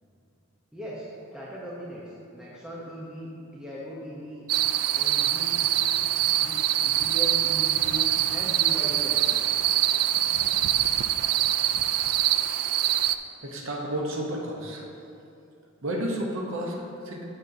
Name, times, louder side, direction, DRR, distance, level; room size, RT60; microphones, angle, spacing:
voice 1, 0.7-4.5 4.9-5.5 6.2-9.4, equal, 5° right, -7 dB, 0.8 m, -39 dB
sound 1, 4.5-13.2, right 12 dB, 85° right, 0.3 m, -24 dB
voice 2, 13.4-14.8 15.8-17.2, right 1 dB, 60° right, -1 dB, 0.9 m, -31 dB
14.0 x 5.3 x 2.7 m, 2.6 s
head